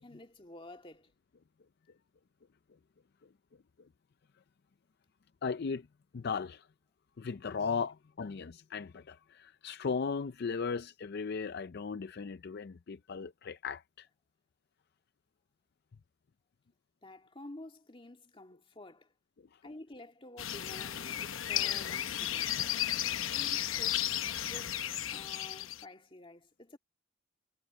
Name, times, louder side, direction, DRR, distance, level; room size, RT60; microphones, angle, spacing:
voice 1, 0.0-1.1 17.0-19.1 19.6-22.6 23.0-24.1 24.4-26.8, left 1 dB, 25° left, 1.9 m, -51 dB
voice 2, 5.4-5.9 6.1-6.6 7.2-14.1, left 5 dB, 55° left, 0.4 m, -37 dB
sound 1, 20.4-25.8, left 11 dB, 85° left, 0.9 m, -34 dB
head